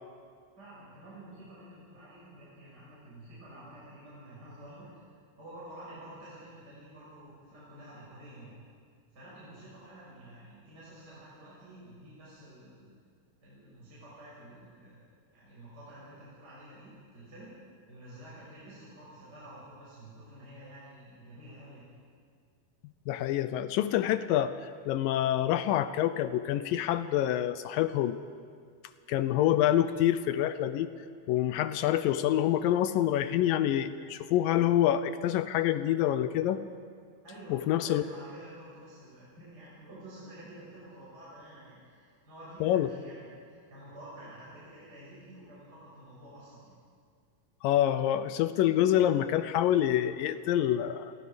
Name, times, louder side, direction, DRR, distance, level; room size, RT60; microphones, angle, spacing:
voice 1, 0.6-4.9 5.4-8.5 9.1-12.9 13.4-15.0 15.3-17.5 17.9-21.8 37.2-46.7, right 1 dB, 25° right, -9 dB, 7.0 m, -50 dB
voice 2, 23.1-28.2 29.1-30.9 31.3-36.6 37.5-38.0 42.6-42.9 47.6-51.1, left 12 dB, 75° left, 12 dB, 2.2 m, -27 dB
30.0 x 22.5 x 5.2 m, 2.1 s
omnidirectional pair, 4.5 m